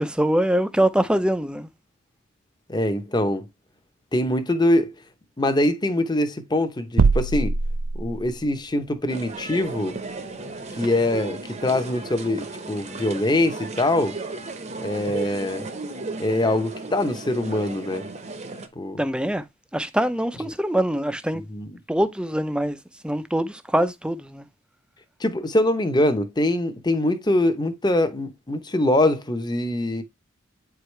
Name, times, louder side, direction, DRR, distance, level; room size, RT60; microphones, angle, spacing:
voice 1, 0.0-1.7 19.0-19.4 19.7-21.4 21.9-22.8 23.0-24.4, right 1 dB, 5° right, 0.5 m, -23 dB
voice 2, 2.7-3.5 4.1-4.9 5.4-7.5 8.0-10.0 10.8-14.1 14.8-15.7 16.2-18.1 18.8-19.0 21.3-21.7 25.2-30.0, left 1 dB, 20° left, 0.8 m, -23 dB
sound 1, 7.0-8.6, right 4 dB, 70° right, 0.5 m, -22 dB
sound 2, 9.1-18.7, right 3 dB, 30° right, 0.9 m, -35 dB
8.7 x 4.8 x 3.2 m
head